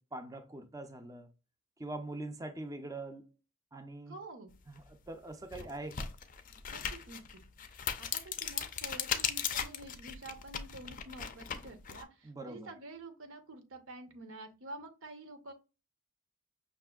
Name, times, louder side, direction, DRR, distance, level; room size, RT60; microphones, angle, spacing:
voice 1, 0.0-1.3 1.8-3.2 3.7-4.2 4.7-6.1 12.2-12.7, right 2 dB, 15° right, 0.4 m, -43 dB
voice 2, 4.1-4.5 5.6-5.7 6.7-7.2 7.7-15.5, right 2 dB, 80° right, 0.9 m, -49 dB
sound 1, 4.8-4.9 5.4-12.0, left 8 dB, 40° left, 0.4 m, -38 dB
5.7 x 2.5 x 2.3 m
head